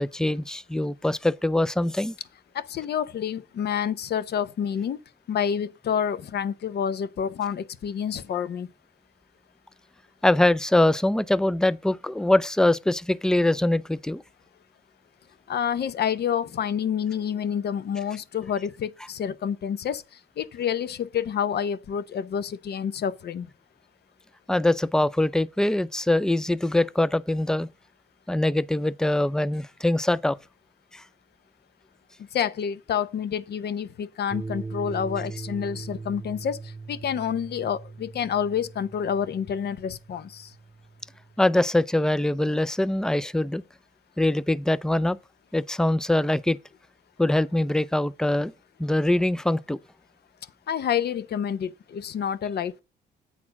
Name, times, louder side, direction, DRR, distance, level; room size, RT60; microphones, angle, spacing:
voice 1, 0.0-2.2 10.2-14.2 24.5-27.7 28.3-30.4 30.9-31.0 41.4-43.6 44.2-45.2 45.5-46.6 47.2-48.5 48.8-49.8, left 1 dB, 5° left, 0.4 m, -23 dB
voice 2, 2.5-5.0 5.3-8.7 15.5-20.0 20.4-23.5 32.3-36.6 36.9-40.5 50.7-52.8, left 8 dB, 55° left, 0.7 m, -28 dB
sound 1, 34.3-41.4, right 3 dB, 15° right, 0.9 m, -40 dB
8.7 x 4.2 x 5.8 m
cardioid pair, 90°, 20 cm